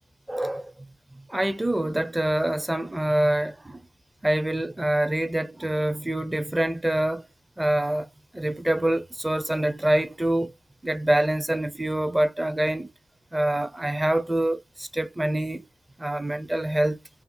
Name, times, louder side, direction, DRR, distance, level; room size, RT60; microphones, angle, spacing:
voice 1, 0.3-0.9 1.1-3.8 4.2-7.3 7.6-8.1 8.3-10.5 10.8-12.9 13.3-15.7 16.0-17.0, right 1 dB, 15° right, 0.6 m, -25 dB
2.8 x 2.0 x 3.7 m
cardioid pair, 55°, 0 cm